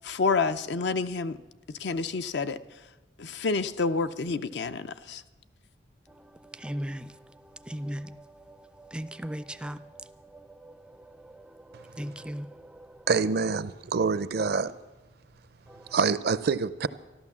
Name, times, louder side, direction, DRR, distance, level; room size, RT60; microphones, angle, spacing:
voice 1, 0.0-1.4 1.8-2.6 3.2-5.2, left 4 dB, 65° left, 0.6 m, -28 dB
voice 2, 6.1-13.1 15.7-16.0, equal, 5° right, 0.4 m, -40 dB
voice 3, 13.1-14.7 15.9-16.9, right 5 dB, 60° right, 0.5 m, -26 dB
13.0 x 12.0 x 7.2 m
head